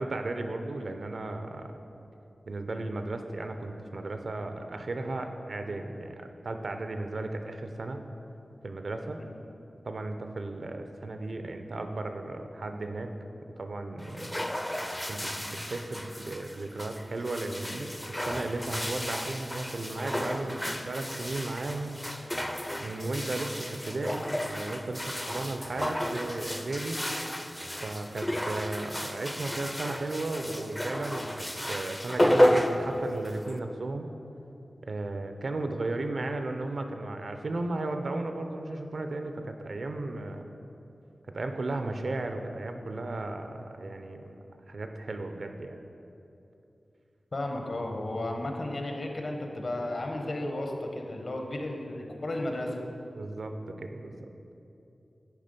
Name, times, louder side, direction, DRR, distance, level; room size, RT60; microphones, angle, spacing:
voice 1, 0.0-1.7 2.5-8.0 8.6-9.2 9.8-13.1 13.6-14.4 15.1-22.0 22.8-27.0 27.8-34.1 34.9-40.4 41.3-44.4 44.7-45.8 53.1-54.3, right 2 dB, 65° right, 6 dB, 0.5 m, -35 dB
sound 1, 14.0-33.6, equal, 10° left, 0.4 m, -32 dB
voice 2, 47.3-52.8, left 1 dB, 55° left, 2 dB, 0.8 m, -33 dB
9.8 x 3.5 x 5.2 m, 2.8 s
wide cardioid pair, 100°, 0 cm